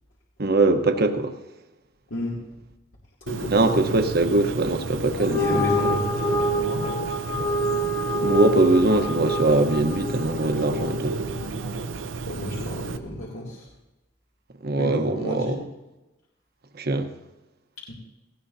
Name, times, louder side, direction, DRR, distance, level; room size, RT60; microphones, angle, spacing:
voice 1, 0.4-1.3 3.5-5.6 8.2-11.2 14.6-15.6 16.7-17.1, right 2 dB, 55° right, 1.1 m, -22 dB
voice 2, 2.1-2.4 3.2-3.6 5.3-7.4 12.3-13.7 14.8-15.6 17.9-18.0, left 1 dB, 80° left, 2.7 m, -32 dB
Bird, 3.3-13.0, right 3 dB, 75° right, 0.7 m, -32 dB
sound 1, 5.1-11.7, equal, 25° left, 1.1 m, -27 dB
18.5 x 16.0 x 2.8 m
head